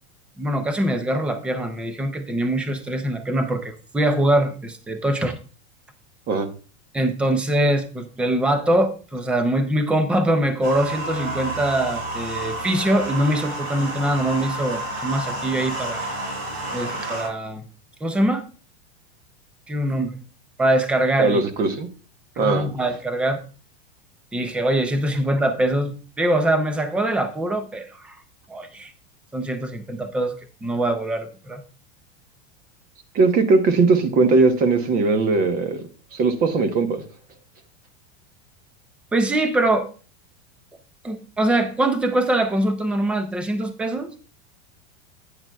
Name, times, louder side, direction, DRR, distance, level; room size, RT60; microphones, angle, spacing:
voice 1, 0.4-5.4 6.9-16.0 16.7-17.6 18.0-18.4 19.7-20.2 20.6-21.4 22.4-23.4 24.3-28.2 28.5-28.9 29.3-31.6 39.1-39.9 41.0-44.1, right 1 dB, 5° right, 9 dB, 0.4 m, -23 dB
sound 1, 10.6-17.3, right 1 dB, 65° right, 4.2 m, -30 dB
voice 2, 21.2-21.9 22.4-22.7 33.1-35.8 36.1-37.0, right 3 dB, 25° right, 9 dB, 1.0 m, -19 dB
10.5 x 8.9 x 2.3 m, 0.36 s
supercardioid pair, 160°, 34 cm